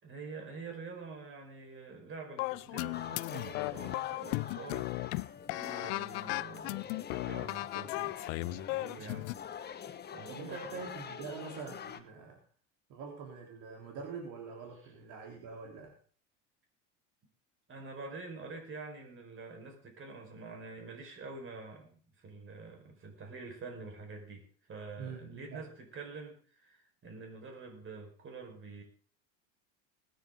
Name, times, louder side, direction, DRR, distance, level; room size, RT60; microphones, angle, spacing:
voice 1, 0.0-4.9 5.5-9.4 10.1-10.7 17.7-28.8, right 4 dB, 35° right, 3 dB, 4.7 m, -47 dB
sound 1, 2.4-9.3, left 24 dB, 70° left, 0.5 m, -36 dB
sound 2, 2.9-12.0, left 8 dB, 25° left, 1.1 m, -45 dB
voice 2, 10.3-12.4 12.9-16.0 25.0-25.7, right 5 dB, 55° right, 0 dB, 3.5 m, -44 dB
20.0 x 9.6 x 3.8 m, 0.42 s
supercardioid pair, 110°, 37 cm